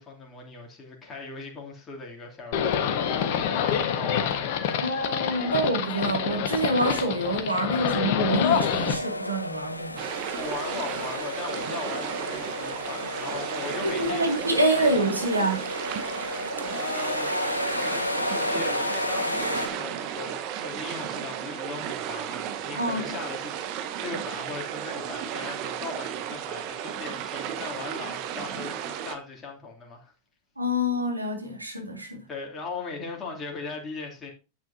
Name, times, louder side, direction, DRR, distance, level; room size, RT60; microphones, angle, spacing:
voice 1, 0.0-4.6 4.9-5.0 10.3-14.3 14.8-15.0 16.7-17.3 17.7-30.1 32.3-34.3, left 3 dB, 20° left, 2.9 m, -39 dB
Livestock farm animals working animals, 2.5-8.9, left 8 dB, 50° left, 1.4 m, -26 dB
voice 2, 4.8-10.1 13.8-15.7 22.8-23.1 30.6-32.2, right 1 dB, 85° right, 2.3 m, -26 dB
sound 1, 8.5-19.7, left 1 dB, 85° left, 0.8 m, -32 dB
sound 2, 10.0-29.1, right 9 dB, 40° right, 1.2 m, -34 dB
10.5 x 8.4 x 2.8 m
figure-of-eight pair, 90°, 0 cm